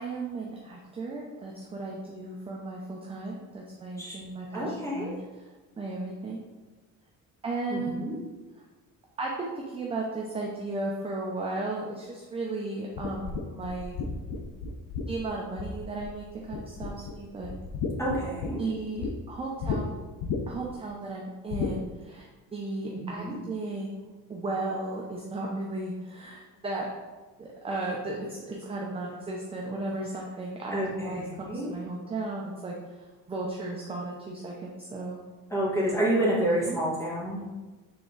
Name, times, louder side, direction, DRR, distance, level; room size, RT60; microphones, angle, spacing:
voice 1, 0.0-5.1 5.8-6.4 7.4-8.1 9.2-14.0 15.1-17.5 18.6-20.0 20.5-26.9 27.4-32.7 33.3-35.2 36.6-36.8, right 2 dB, 15° right, -2 dB, 0.6 m, -35 dB
voice 2, 4.5-5.1 7.7-8.1 18.0-18.6 22.9-23.3 30.7-31.7 35.5-37.4, right 1 dB, 10° left, -6 dB, 1.5 m, -29 dB
sound 1, 13.0-16.2 16.5-17.1 17.4-19.1 19.6-19.8 20.2-20.7 21.5-21.8, left 5 dB, 80° left, 0.8 m, -33 dB
6.9 x 3.6 x 3.9 m, 1.2 s
cardioid pair, 175°, 35 cm